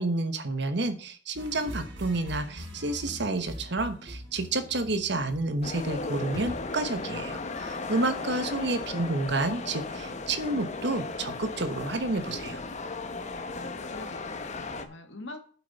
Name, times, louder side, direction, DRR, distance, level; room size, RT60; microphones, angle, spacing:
voice 1, 0.0-12.6, right 2 dB, 65° right, 10 dB, 1.2 m, -30 dB
sound 1, 1.3-6.4, equal, 90° right, 3.5 m, -42 dB
sound 2, 5.6-14.9, left 3 dB, 40° left, 0.9 m, -36 dB
sound 3, 6.3-12.8 13.1-13.3, equal, 15° left, 2.7 m, -50 dB
voice 2, 13.5-15.4, left 2 dB, 80° left, 6 dB, 1.8 m, -45 dB
8.7 x 7.7 x 4.2 m, 0.42 s
head